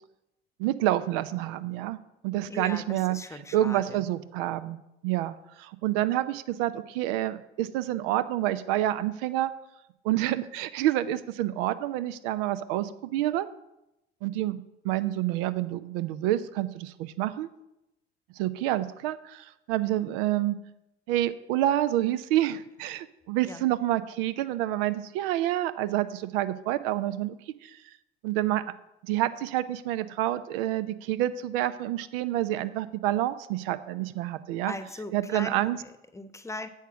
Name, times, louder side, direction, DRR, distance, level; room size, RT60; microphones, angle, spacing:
voice 1, 0.6-3.2 3.5-9.5 10.0-13.5 14.2-17.5 18.4-20.6 21.1-27.8 28.2-28.6 29.0-34.7 35.1-35.8, right 14 dB, 60° right, 14 dB, 0.7 m, -28 dB
voice 2, 2.5-4.0 23.4-23.6 34.7-36.7, left 2 dB, 10° left, 10 dB, 1.0 m, -39 dB
9.3 x 8.0 x 5.9 m, 0.88 s
figure-of-eight pair, 60°, 32 cm